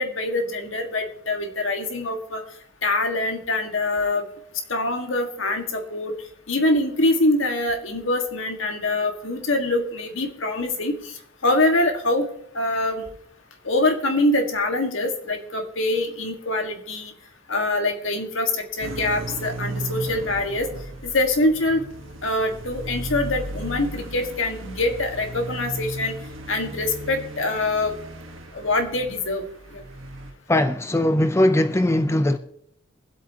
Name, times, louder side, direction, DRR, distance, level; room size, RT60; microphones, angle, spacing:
voice 1, 0.0-2.4 2.8-4.2 4.7-6.1 6.5-11.1 11.4-12.3 12.5-13.0 13.6-17.1 17.5-20.7 21.0-21.8 22.2-26.1 26.5-27.9 28.5-29.4 29.7-29.8, left 2 dB, 80° left, 1.7 m, -24 dB
sound 1, 18.8-30.3, right 2 dB, 80° right, 1.4 m, -35 dB
voice 2, 30.5-32.4, left 1 dB, 15° left, 0.5 m, -20 dB
24.0 x 8.2 x 2.9 m
head